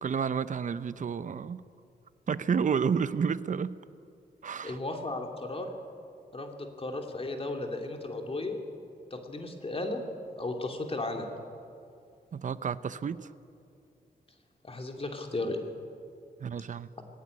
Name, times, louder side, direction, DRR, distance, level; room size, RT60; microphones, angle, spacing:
voice 1, 0.0-1.6 2.3-3.8 4.4-4.8 12.3-13.3 16.4-16.9, right 6 dB, 50° right, 15 dB, 0.7 m, -30 dB
voice 2, 4.6-5.7 6.3-8.6 9.1-10.0 10.4-11.3 14.6-15.6, left 2 dB, 35° left, 3 dB, 2.4 m, -35 dB
19.5 x 16.0 x 9.7 m, 2.5 s
wide cardioid pair, 100°, 17 cm